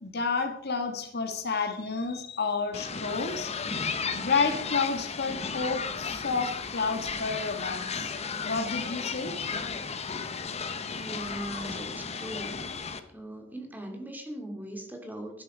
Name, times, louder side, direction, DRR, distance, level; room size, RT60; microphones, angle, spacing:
voice 1, 0.0-3.8 4.1-8.1 8.4-9.3, left 4 dB, 55° left, 7 dB, 1.5 m, -30 dB
sound 1, 2.7-13.0, left 5 dB, 35° left, 1.0 m, -34 dB
voice 2, 11.0-12.6 13.1-15.4, right 1 dB, 10° right, 3 dB, 2.6 m, -39 dB
12.5 x 11.5 x 5.1 m, 0.72 s
head